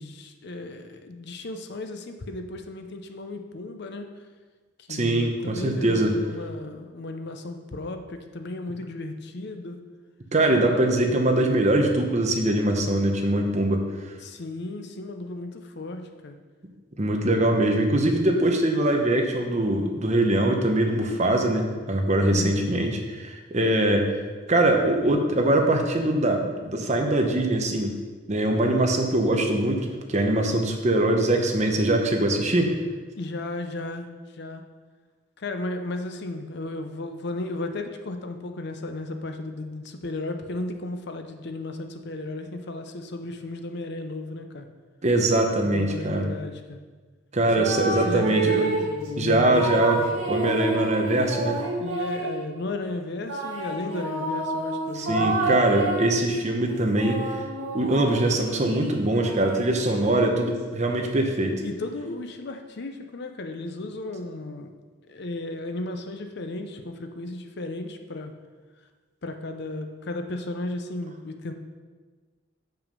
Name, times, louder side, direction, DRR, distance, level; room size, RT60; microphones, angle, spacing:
voice 1, 0.0-4.1 4.9-9.8 14.2-16.4 22.2-22.7 33.2-34.7 35.4-44.7 45.6-46.8 47.6-47.7 48.0-50.1 51.8-55.5 61.6-64.7 65.1-68.3 69.2-71.5, left 2 dB, 60° left, 6 dB, 0.6 m, -34 dB
voice 2, 4.9-6.1 10.3-13.9 17.0-24.1 24.5-27.9 28.3-32.7 45.0-46.3 47.3-48.7 49.2-51.6 54.9-57.2 57.7-61.6, right 1 dB, 35° right, 3 dB, 0.9 m, -22 dB
sound 1, 47.5-49.0 49.5-52.4 53.3-56.2 56.7-60.3, right 2 dB, 85° right, 2.2 m, -29 dB
7.0 x 5.8 x 5.3 m, 1.4 s
head